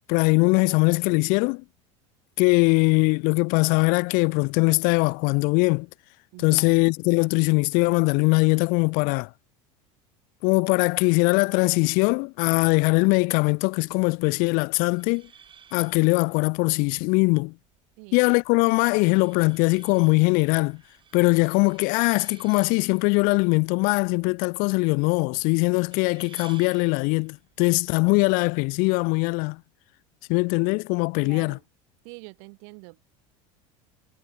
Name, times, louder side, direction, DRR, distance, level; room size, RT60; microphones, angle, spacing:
voice 1, 0.1-1.6 2.4-5.9 6.4-9.3 10.4-15.3 15.7-17.5 18.1-20.8 21.1-29.6 30.3-31.6, left 30 dB, 60° left, 0.4 m, -21 dB
voice 2, 6.3-6.8 18.0-18.3 31.2-31.6 32.0-33.0, right 40 dB or more, 70° right, 4.6 m, -45 dB
sound 1, 14.6-29.6, right 8 dB, 30° right, 3.0 m, -55 dB
supercardioid pair, 115°, 17 cm